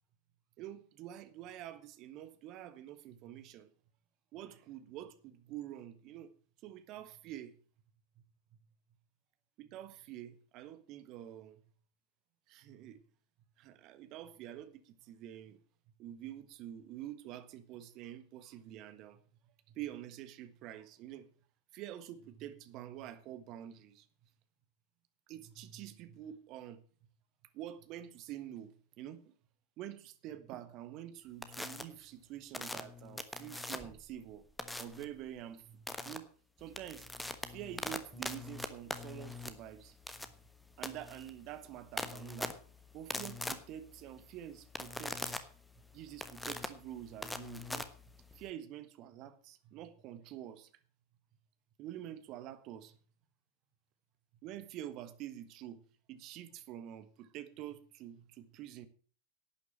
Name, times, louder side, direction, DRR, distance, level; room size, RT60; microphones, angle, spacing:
voice 1, 0.6-3.7 4.3-6.3 6.6-7.6 8.5-8.6 9.6-11.6 12.5-13.0 13.6-15.6 16.0-21.3 21.7-24.1 25.3-26.8 27.5-29.3 29.8-34.5 34.8-36.3 36.6-37.1 37.4-40.0 40.8-42.5 42.9-45.5 45.9-47.9 48.3-50.7 51.8-53.0 54.4-58.9, right 12 dB, 40° right, 1.5 m, -47 dB
sound 1, 31.4-31.8 32.5-34.0 34.6-35.0 35.9-36.2 36.6-48.5, left 2 dB, 5° left, 1.3 m, -42 dB
11.5 x 9.2 x 7.4 m
figure-of-eight pair, 90°, 0 cm